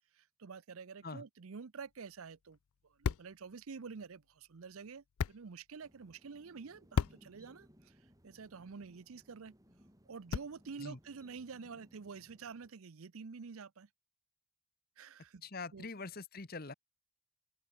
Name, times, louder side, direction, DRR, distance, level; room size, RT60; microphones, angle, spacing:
voice 1, 0.1-2.6 2.8-8.0 8.2-9.5 10.1-13.9 15.0-15.4 15.7-15.9, right 5 dB, 75° right, 0.6 m, -48 dB
sound 1, 1.8-10.8, left 6 dB, 80° left, 0.4 m, -43 dB
sound 2, 5.8-12.7, equal, 15° right, 4.4 m, -64 dB
voice 2, 15.4-16.7, left 3 dB, 45° left, 1.1 m, -44 dB
open air
head